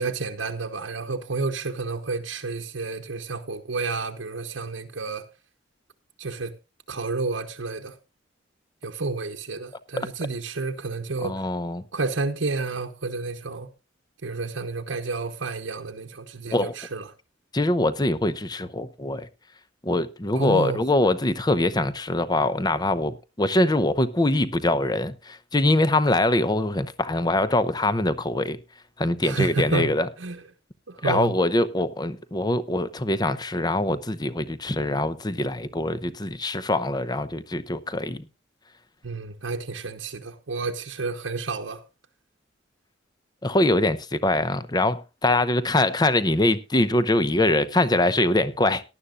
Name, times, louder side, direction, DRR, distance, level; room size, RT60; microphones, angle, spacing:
voice 1, 0.0-5.3 6.2-6.5 6.9-8.0 8.8-11.5 11.9-13.7 14.2-17.1 20.3-20.8 29.2-29.9 30.2-30.4 30.9-31.3 39.0-41.8, right 3 dB, 80° right, 1.1 m, -30 dB
voice 2, 11.2-11.8 16.5-16.7 17.5-19.3 19.8-28.6 29.0-30.1 31.0-38.3 43.4-48.8, left 2 dB, 20° left, 0.7 m, -23 dB
18.0 x 11.5 x 2.5 m
head